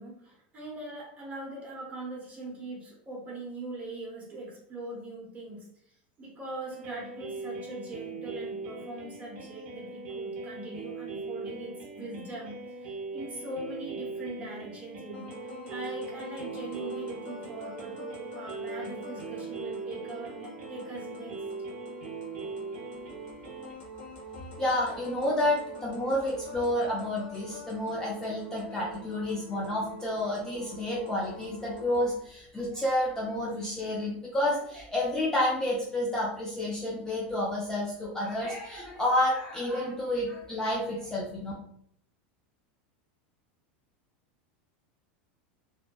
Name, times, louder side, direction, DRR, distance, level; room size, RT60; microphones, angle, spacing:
voice 1, 0.0-15.3 15.7-21.4, right 2 dB, 25° right, -3 dB, 1.0 m, -41 dB
sound 1, 6.7-23.7, right 3 dB, 70° right, 0.6 m, -40 dB
sound 2, 15.1-32.1, right 1 dB, 65° left, 1.2 m, -45 dB
voice 2, 24.6-41.5, left 1 dB, 10° left, -5 dB, 0.5 m, -30 dB
2.6 x 2.1 x 2.2 m, 0.69 s
supercardioid pair, 125°, 6 cm